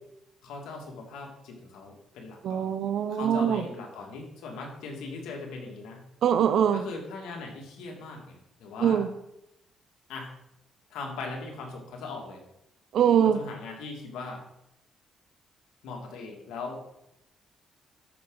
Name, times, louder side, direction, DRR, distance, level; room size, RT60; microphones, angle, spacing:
voice 1, 0.4-2.6 3.1-6.0 6.7-9.1 10.1-10.3 10.9-12.4 13.3-14.4 15.8-16.8, left 3 dB, 90° left, 1 dB, 2.4 m, -39 dB
voice 2, 2.4-3.6 6.2-6.8 8.8-9.1 12.9-13.4, right 8 dB, 70° right, 10 dB, 0.6 m, -23 dB
13.5 x 6.2 x 4.0 m, 0.82 s
cardioid pair, 90°, 0 cm